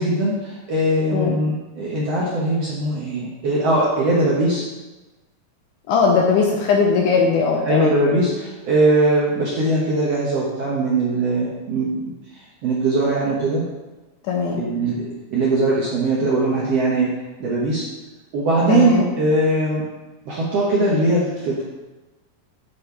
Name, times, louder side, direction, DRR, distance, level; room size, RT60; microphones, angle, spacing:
voice 1, 0.0-4.7 7.6-11.9 12.3-13.6 14.6-17.1 17.4-17.8 18.3-19.8 20.2-21.6, right 2 dB, 65° right, -5 dB, 1.6 m, -20 dB
voice 2, 5.9-8.0 14.2-14.6 18.7-19.0, left 5 dB, 75° left, 0 dB, 1.9 m, -19 dB
8.7 x 5.1 x 4.7 m, 1.1 s
omnidirectional pair, 4.2 m